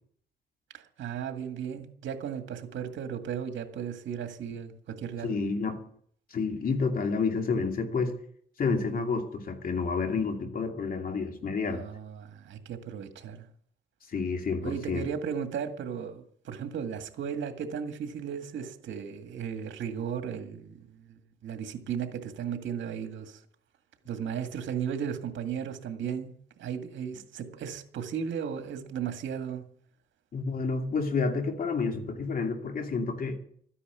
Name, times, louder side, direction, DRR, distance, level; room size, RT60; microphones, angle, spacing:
voice 1, 0.7-5.4 11.7-13.5 14.6-23.4 24.1-26.3 26.6-29.6, right 7 dB, 70° right, 1.9 m, -35 dB
voice 2, 5.2-5.8 6.3-8.1 8.6-11.8 14.1-15.1 30.3-33.4, left 4 dB, 45° left, 2.7 m, -29 dB
13.5 x 10.0 x 6.9 m
cardioid pair, 90°, 20 cm